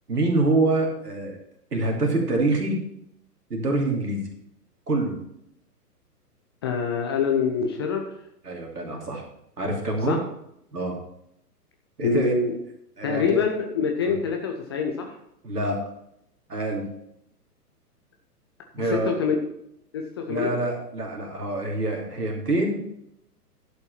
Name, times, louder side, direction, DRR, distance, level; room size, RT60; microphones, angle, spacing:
voice 1, 0.1-1.4 1.7-2.8 3.5-4.2 4.9-5.1 8.4-9.2 9.6-10.2 10.7-11.0 12.0-12.3 13.0-13.4 14.0-14.1 15.4-15.8 16.5-16.9 18.7-19.1 20.3-22.8, right 2 dB, 70° right, 1 dB, 2.9 m, -25 dB
voice 2, 6.6-8.1 10.1-10.2 12.0-12.5 13.0-15.1 18.9-19.4 19.9-20.6, left 5 dB, 15° left, 3 dB, 0.5 m, -25 dB
11.0 x 5.4 x 5.8 m, 0.76 s
figure-of-eight pair, 120°, 48 cm